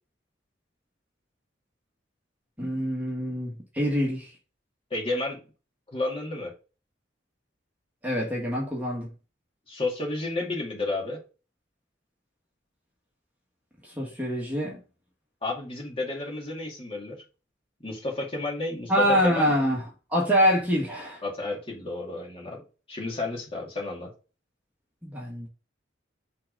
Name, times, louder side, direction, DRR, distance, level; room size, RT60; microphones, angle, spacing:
voice 1, 2.6-4.3 8.0-9.1 13.8-14.8 18.9-21.2 25.0-25.5, equal, 10° right, 1.5 m, -25 dB
voice 2, 4.9-5.4 5.9-6.5 9.7-11.2 15.4-17.2 17.8-19.5 21.2-22.6 22.9-24.1, left 2 dB, 30° left, 2.2 m, -31 dB
5.9 x 3.7 x 5.2 m
head